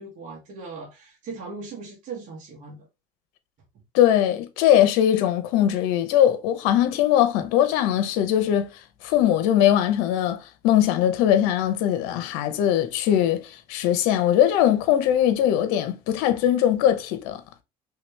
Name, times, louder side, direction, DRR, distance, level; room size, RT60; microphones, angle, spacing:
voice 1, 0.0-2.9, right 4 dB, 55° right, 1.5 m, -38 dB
voice 2, 3.9-8.7 9.0-17.4, left 11 dB, 80° left, 0.7 m, -21 dB
3.2 x 3.0 x 3.2 m
supercardioid pair, 100°, 15 cm